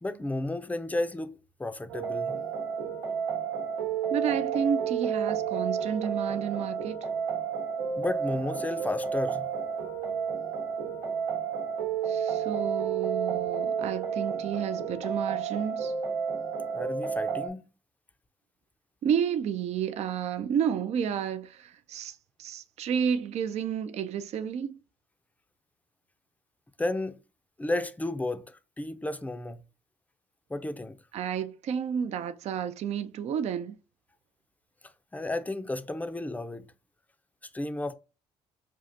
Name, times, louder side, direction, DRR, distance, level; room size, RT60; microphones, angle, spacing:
voice 1, 0.0-2.4 8.0-9.5 16.7-17.6 26.8-27.2 27.6-29.6 30.5-31.0 35.1-36.6 37.5-37.9, left 2 dB, 10° left, 0.5 m, -32 dB
sound 1, 1.9-17.5, right 7 dB, 85° right, 1.0 m, -31 dB
voice 2, 4.1-7.0 12.1-15.9 19.0-24.8 31.1-33.8, right 8 dB, 55° right, 0.4 m, -31 dB
5.3 x 2.4 x 2.6 m
supercardioid pair, 70°, 14 cm